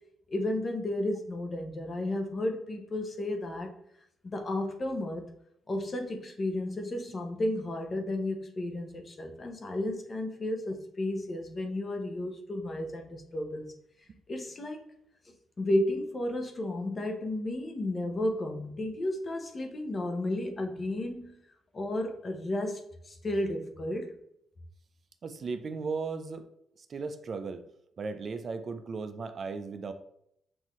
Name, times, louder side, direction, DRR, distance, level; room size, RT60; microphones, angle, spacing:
voice 1, 0.3-3.7 4.2-5.3 5.7-13.7 14.3-14.8 15.6-21.4 21.7-24.1, left 1 dB, 35° left, 4 dB, 0.8 m, -33 dB
voice 2, 25.2-26.4 26.9-27.6 28.0-29.9, right 4 dB, 45° right, 8 dB, 0.4 m, -36 dB
5.7 x 2.7 x 3.0 m, 0.74 s
cardioid pair, 90°, 0 cm